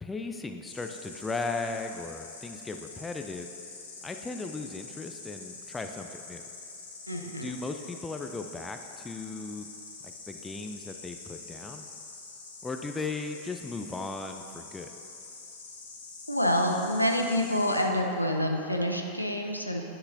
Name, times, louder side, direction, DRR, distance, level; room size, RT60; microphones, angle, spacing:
voice 1, 0.0-3.5 4.0-6.4 7.2-9.7 10.0-11.8 12.6-14.9, left 3 dB, 15° left, 5 dB, 0.4 m, -37 dB
Insect, 0.7-17.8, left 4 dB, 65° left, 1.1 m, -46 dB
voice 2, 7.1-7.5 16.3-19.8, equal, 90° left, 2 dB, 0.6 m, -27 dB
9.7 x 5.6 x 2.7 m, 2.7 s
figure-of-eight pair, 90°, 0 cm